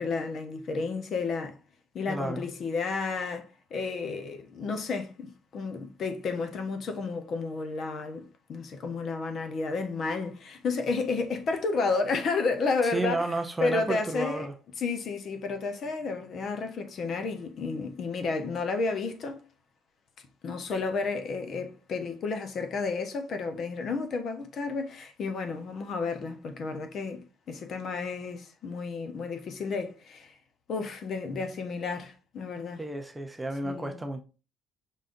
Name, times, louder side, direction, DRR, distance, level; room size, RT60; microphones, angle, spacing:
voice 1, 0.0-1.6 1.9-13.3 13.6-14.5 14.8-19.4 20.4-30.3 30.7-32.8 33.6-34.0, left 4 dB, 40° left, 0.6 m, -32 dB
voice 2, 2.1-2.4 12.8-14.5 32.8-34.2, right 2 dB, 10° right, 0.4 m, -32 dB
5.5 x 3.7 x 2.5 m
cardioid pair, 165°, 0 cm